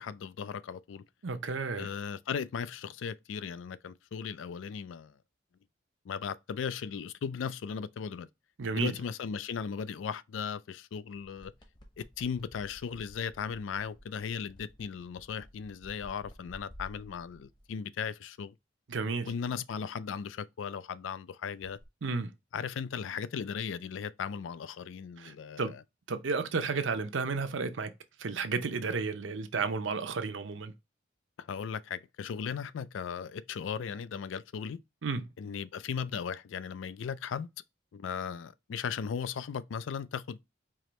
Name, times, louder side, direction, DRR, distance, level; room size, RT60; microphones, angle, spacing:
voice 1, 0.0-1.0 1.8-5.1 6.1-8.3 8.8-11.5 12.0-18.5 19.2-21.8 22.5-25.8 31.4-34.8 35.4-37.5 37.9-40.4, left 6 dB, 85° left, 0.4 m, -37 dB
voice 2, 1.2-1.9 8.6-8.9 18.9-19.3 22.0-22.3 25.2-25.7 26.1-27.9 28.2-30.7 35.0-35.2, right 4 dB, 80° right, 0.6 m, -32 dB
sound 1, 11.1-17.7 21.5-21.9, equal, 25° left, 0.9 m, -54 dB
4.8 x 2.9 x 3.0 m
head